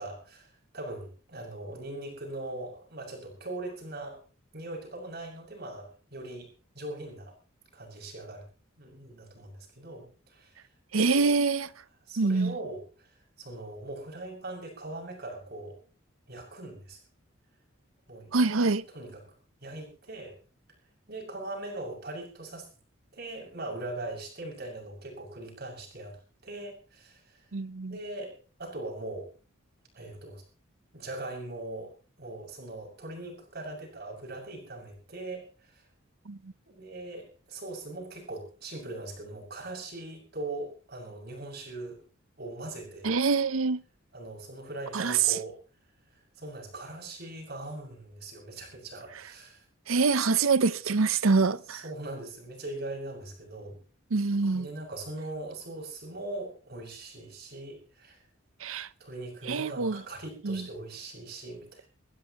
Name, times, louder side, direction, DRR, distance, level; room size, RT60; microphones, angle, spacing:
voice 1, 0.0-4.2 4.5-6.5 6.7-7.4 7.7-8.5 8.8-10.6 11.0-11.3 12.1-13.1 13.4-15.8 16.3-17.0 18.1-18.3 18.9-19.2 19.6-20.4 21.1-22.7 23.1-26.2 26.4-27.4 27.9-29.3 29.9-30.4 30.9-31.9 32.2-35.8 36.7-42.0 42.4-43.2 44.1-45.6 46.4-49.6 51.7-53.8 54.5-58.2 59.0-61.9, right 2 dB, 50° right, 6.8 m, -40 dB
voice 2, 10.9-11.7 12.2-12.5 18.3-18.8 27.5-28.0 36.3-36.4 43.0-43.8 44.9-45.2 49.9-51.8 54.1-54.7 58.6-58.9 59.5-60.0 60.4-60.6, right 4 dB, 90° right, 0.8 m, -25 dB
23.5 x 15.5 x 3.1 m
head